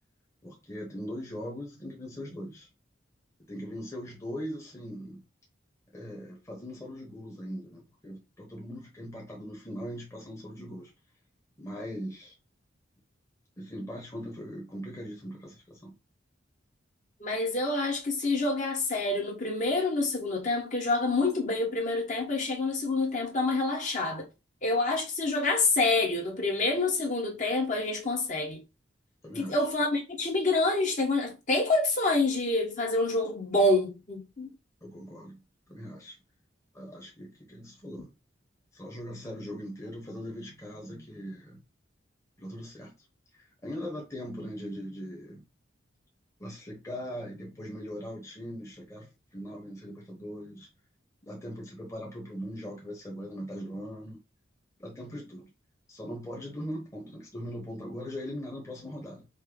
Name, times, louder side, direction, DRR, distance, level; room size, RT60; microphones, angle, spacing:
voice 1, 0.4-2.7 3.5-5.2 5.9-10.9 11.6-12.3 13.6-15.9 29.2-29.6 34.8-36.2 36.7-38.1 38.7-41.6 42.4-42.9 43.3-45.4 46.4-50.7 51.2-54.2 54.8-55.5 55.9-59.3, equal, 15° left, 1.1 m, -40 dB
voice 2, 17.2-24.3 24.6-28.6 29.3-34.5, left 2 dB, 40° left, 1.3 m, -27 dB
5.3 x 2.1 x 3.8 m
head